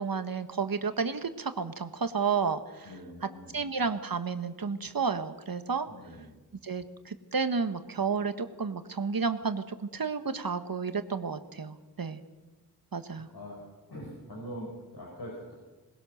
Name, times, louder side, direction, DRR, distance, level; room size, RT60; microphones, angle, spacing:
voice 1, 0.0-2.9 3.2-5.9 6.6-12.2 12.9-13.3, right 5 dB, 65° right, 10 dB, 1.4 m, -31 dB
voice 2, 2.8-3.6 5.9-6.3 13.0-13.6 13.9-15.5, equal, 85° left, -3 dB, 5.5 m, -43 dB
22.0 x 20.0 x 6.6 m, 1.2 s
wide cardioid pair, 65°, 37 cm